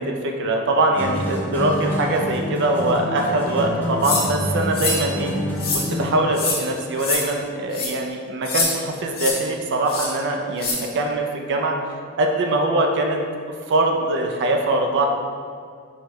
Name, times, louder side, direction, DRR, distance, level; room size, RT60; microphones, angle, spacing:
voice 1, 0.0-5.3 5.7-11.7 12.2-13.2 13.7-15.1, right 2 dB, 55° right, 2 dB, 0.4 m, -22 dB
sound 1, 1.0-6.3, equal, 10° left, 0.4 m, -27 dB
sound 2, 4.0-4.3 4.7-5.0 5.6-5.8 6.3-6.6 7.0-7.2 7.7-7.9 8.4-8.7 9.1-9.3 9.9-10.1 10.6-10.8, left 4 dB, 45° left, 0.7 m, -24 dB
4.4 x 2.3 x 3.0 m, 2.2 s
head